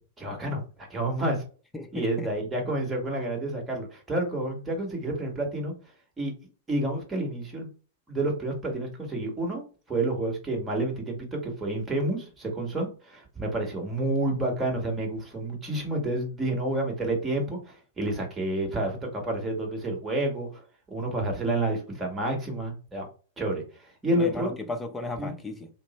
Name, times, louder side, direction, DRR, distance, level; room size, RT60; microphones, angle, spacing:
voice 1, 0.2-1.4 1.9-5.7 6.2-6.3 6.7-7.7 8.1-9.6 9.9-20.6 20.9-23.0 23.4-23.6 24.0-24.5 25.2-25.3, right 1 dB, 15° right, 1.4 m, -29 dB
voice 2, 1.7-2.3 24.2-25.7, left 2 dB, 10° left, 0.7 m, -35 dB
3.1 x 2.1 x 4.1 m
hypercardioid pair, 110°, 0 cm